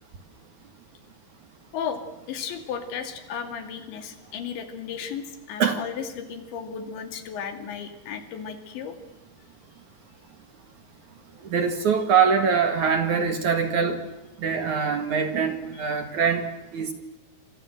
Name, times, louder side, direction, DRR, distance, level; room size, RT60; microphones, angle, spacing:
voice 1, 1.7-8.9, left 7 dB, 85° left, 7 dB, 4.9 m, -34 dB
voice 2, 11.5-14.0 14.4-16.5 16.7-16.9, right 6 dB, 55° right, 7 dB, 2.6 m, -23 dB
29.5 x 25.0 x 7.9 m, 0.96 s
omnidirectional pair, 5.0 m